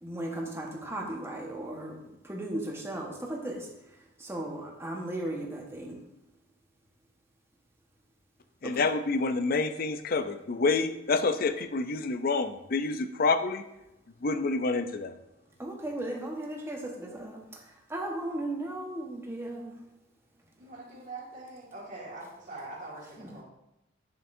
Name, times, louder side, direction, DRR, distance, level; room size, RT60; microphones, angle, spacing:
voice 1, 0.0-2.0 2.2-3.6 4.2-6.0 8.6-8.8 15.6-17.4 17.9-19.7 23.2-23.3, right 1 dB, 15° right, -1 dB, 1.2 m, -36 dB
voice 2, 8.6-13.6 14.2-15.1, left 3 dB, 50° left, 10 dB, 0.5 m, -28 dB
voice 3, 20.6-23.4, right 2 dB, 40° right, -5 dB, 2.0 m, -43 dB
8.1 x 7.5 x 2.6 m, 0.89 s
head